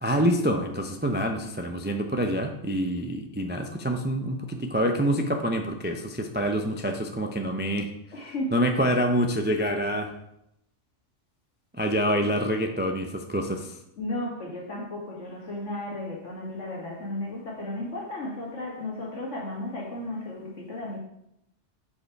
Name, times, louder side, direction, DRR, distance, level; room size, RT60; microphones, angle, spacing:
voice 1, 0.0-7.9 8.2-10.1 11.8-13.8, equal, 20° right, 4 dB, 0.3 m, -26 dB
voice 2, 8.1-8.6 12.2-12.3 14.0-21.0, left 1 dB, 80° left, -3 dB, 2.3 m, -34 dB
6.7 x 5.3 x 4.5 m, 0.80 s
omnidirectional pair, 1.2 m